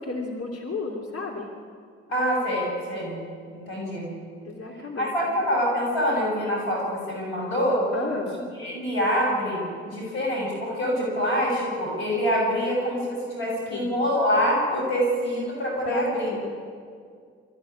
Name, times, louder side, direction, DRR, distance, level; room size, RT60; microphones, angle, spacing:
voice 1, 0.0-1.5 4.4-5.3 7.9-8.4 13.7-13.9 15.9-16.5, left 3 dB, 50° left, 0 dB, 2.9 m, -33 dB
voice 2, 2.1-3.2 3.5-4.1 5.0-7.8 8.6-16.3, equal, 85° left, -3 dB, 7.1 m, -25 dB
24.5 x 14.5 x 10.0 m, 2.1 s
hypercardioid pair, 40°, 32 cm